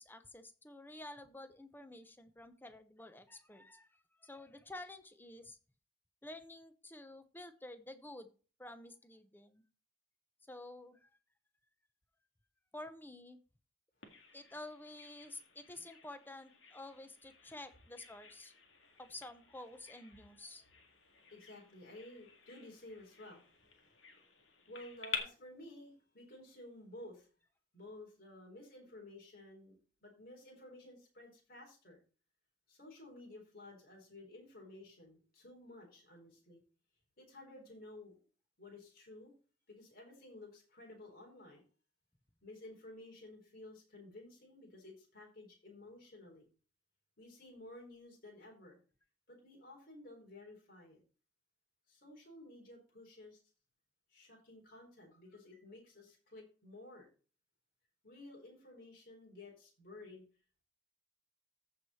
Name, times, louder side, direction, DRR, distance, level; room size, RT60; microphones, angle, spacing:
voice 1, 0.0-5.6 6.2-8.3 8.6-9.6 10.4-11.1 12.7-13.4 14.3-18.5 19.0-20.6, left 2 dB, 10° left, 9 dB, 0.9 m, -50 dB
Bird vocalization bird call bird song, 14.0-25.2, left 7 dB, 85° left, 1.9 m, -50 dB
voice 2, 14.0-14.4 18.7-19.0 21.0-27.3 27.7-32.0 32.7-36.6 37.2-38.1 38.6-39.3 39.7-41.6 42.4-46.5 47.2-48.8 49.3-51.0 51.9-53.4 54.1-57.1 58.0-60.2, left 1 dB, 55° left, -1 dB, 4.1 m, -54 dB
14.5 x 4.9 x 4.3 m, 0.37 s
head